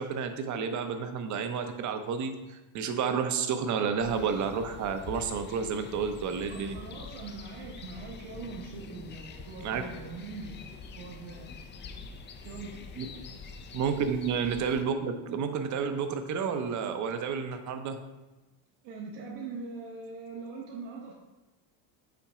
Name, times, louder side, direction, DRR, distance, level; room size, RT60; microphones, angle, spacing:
voice 1, 0.0-6.8 9.6-9.8 13.0-13.1 13.7-18.0, right 6 dB, 35° right, 8 dB, 0.6 m, -31 dB
sound 1, 4.0-14.8, left 4 dB, 25° left, 0.3 m, -45 dB
voice 2, 6.5-11.5 12.4-12.7 18.8-21.1, right 4 dB, 60° right, -1 dB, 1.0 m, -42 dB
5.8 x 3.9 x 4.8 m, 1.1 s
cardioid pair, 125°, 49 cm